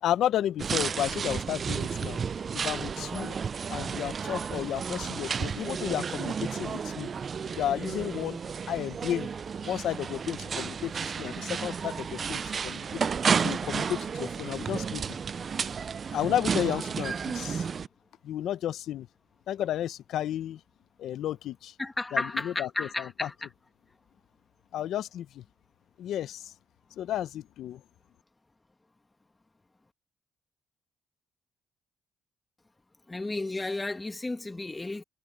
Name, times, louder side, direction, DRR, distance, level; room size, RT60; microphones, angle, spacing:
voice 1, 0.0-2.2 2.5-3.3 3.7-7.1 7.5-8.4 8.7-9.3 9.7-13.0 13.4-15.2 16.1-17.7 18.2-19.1 19.5-20.6 21.0-21.7 22.1-23.3 24.7-25.4 26.0-26.5 27.0-27.8, left 11 dB, 75° left, 0.8 m, -32 dB
sound 1, 0.6-17.9, right 6 dB, 45° right, 0.4 m, -32 dB
voice 2, 21.8-23.3 33.1-35.0, left 2 dB, 20° left, 1.8 m, -33 dB
cardioid pair, 90°, 0 cm